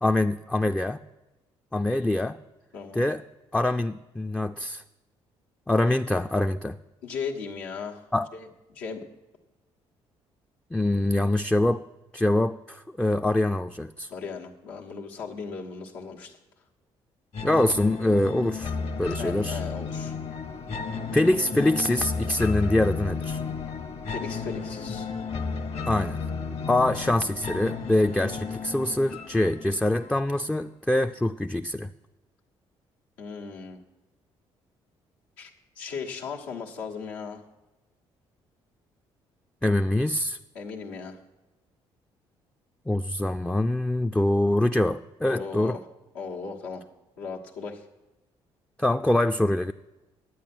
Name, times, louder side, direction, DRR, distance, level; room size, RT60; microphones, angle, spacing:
voice 1, 0.0-1.0 1.7-2.4 2.9-3.2 3.5-4.8 5.7-6.8 8.1-8.3 10.7-11.8 12.1-14.1 17.4-19.6 21.1-23.4 25.9-26.2 26.7-31.9 39.6-40.4 42.9-45.8 48.8-49.7, left 1 dB, 5° left, 6 dB, 0.4 m, -24 dB
voice 2, 2.7-3.1 7.0-8.1 8.3-9.0 14.1-16.4 19.1-20.1 24.1-25.1 26.9-27.1 33.2-33.8 35.4-37.4 40.5-41.2 45.3-45.9 46.1-46.8 47.2-47.8, left 5 dB, 85° left, -2 dB, 1.3 m, -37 dB
sound 1, 17.3-30.3, left 4 dB, 50° left, 1.2 m, -33 dB
11.0 x 8.7 x 6.0 m, 1.1 s
hypercardioid pair, 50°, 13 cm